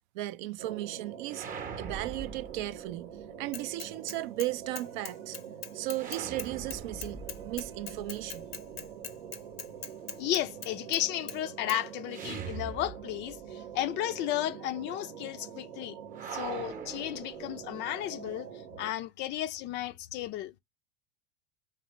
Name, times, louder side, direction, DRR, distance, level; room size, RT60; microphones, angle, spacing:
voice 1, 0.1-1.5 1.8-5.4 5.7-8.5, right 16 dB, 55° right, 0.4 m, -36 dB
sound 1, 0.6-18.9, right 8 dB, 75° right, 0.8 m, -45 dB
sound 2, 1.3-3.3 5.9-8.9 12.1-13.5 13.8-13.9 16.1-17.9, right 6 dB, 30° right, 0.8 m, -42 dB
Bicycle / Mechanisms, 3.5-4.5 4.8-11.0 11.3-11.4 11.7-11.8, left 7 dB, 85° left, 0.7 m, -41 dB
voice 2, 10.2-15.9 16.3-18.5 18.8-20.5, left 13 dB, 40° left, 0.4 m, -33 dB
4.0 x 3.3 x 2.9 m
hypercardioid pair, 80°, 29 cm